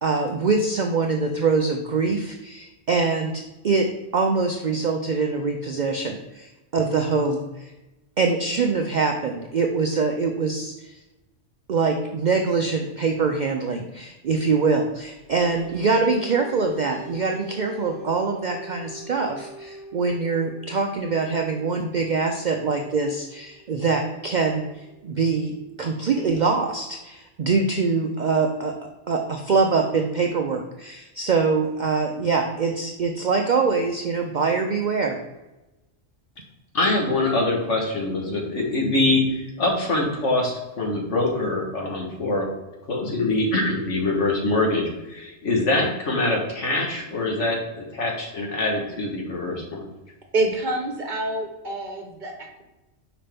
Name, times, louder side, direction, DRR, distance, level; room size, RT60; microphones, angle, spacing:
voice 1, 0.0-3.9 4.1-7.7 8.2-11.0 11.7-25.5 25.8-28.7 29.1-35.2, right 4 dB, 60° right, 3 dB, 0.5 m, -24 dB
sound 1, 15.0-25.9, right 2 dB, 15° left, 2.1 m, -43 dB
voice 2, 36.7-42.5 42.9-49.9, left 2 dB, 70° left, 0 dB, 1.6 m, -24 dB
voice 3, 50.3-52.6, right 2 dB, 45° right, 2 dB, 0.9 m, -27 dB
5.6 x 5.0 x 3.4 m, 1.0 s
omnidirectional pair, 1.3 m